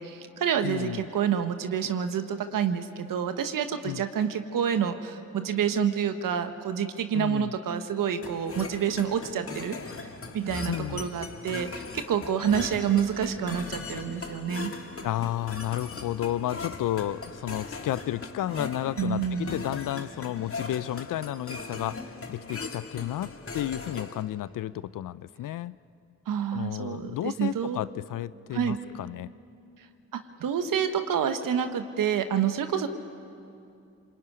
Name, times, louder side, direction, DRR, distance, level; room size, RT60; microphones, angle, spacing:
voice 1, 0.0-10.1 10.3-14.7 19.0-19.5 26.3-27.8 28.5-28.8 30.4-32.9, right 8 dB, 70° right, 8 dB, 1.5 m, -28 dB
voice 2, 0.6-1.0 3.8-4.0 7.1-7.5 10.7-11.1 15.0-25.7 26.5-29.3, left 13 dB, 65° left, 18 dB, 0.6 m, -32 dB
sound 1, 8.2-24.2, left 3 dB, 40° left, 2.1 m, -39 dB
26.0 x 21.5 x 9.7 m, 2.6 s
hypercardioid pair, 45°, 35 cm